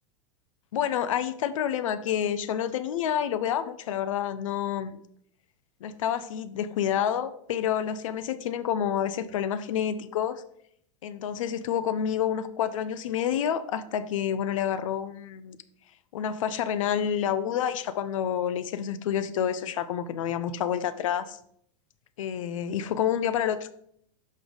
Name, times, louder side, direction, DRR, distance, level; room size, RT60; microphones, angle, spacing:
voice 1, 0.7-5.0 5.8-10.4 11.0-15.6 16.1-21.4 22.2-23.6, left 9 dB, 85° left, 13 dB, 0.6 m, -28 dB
6.2 x 5.3 x 3.9 m, 0.70 s
supercardioid pair, 145°, 16 cm